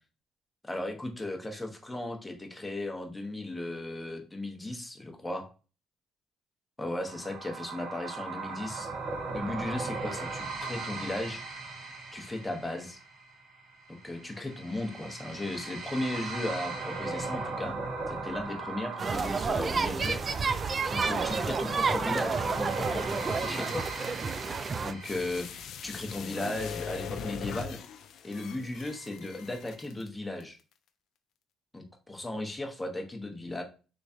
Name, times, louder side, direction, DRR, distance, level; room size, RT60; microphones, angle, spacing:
voice 1, 0.6-5.5 6.8-8.9 9.3-11.4 12.1-13.0 13.9-17.8 18.1-20.2 20.5-23.9 24.8-25.5 25.8-27.8 28.2-30.6 31.7-33.6, left 1 dB, 15° left, 3 dB, 0.9 m, -36 dB
sound 1, 7.0-25.6, right 3 dB, 65° right, 1.5 m, -38 dB
sound 2, 19.0-24.9, right 4 dB, 40° right, 0.3 m, -30 dB
sound 3, 25.0-30.1 30.4-30.5, left 7 dB, 70° left, 0.4 m, -40 dB
3.4 x 3.1 x 2.7 m, 0.34 s
supercardioid pair, 70°, 0 cm